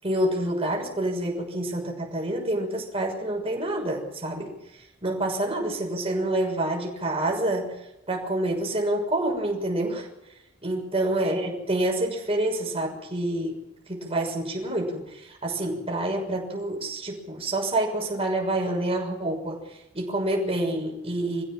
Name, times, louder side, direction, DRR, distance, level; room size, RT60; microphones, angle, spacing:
voice 1, 0.0-10.1 10.6-13.6 13.9-21.4, right 1 dB, 30° right, 0 dB, 6.5 m, -28 dB
26.0 x 16.0 x 7.6 m, 0.90 s
head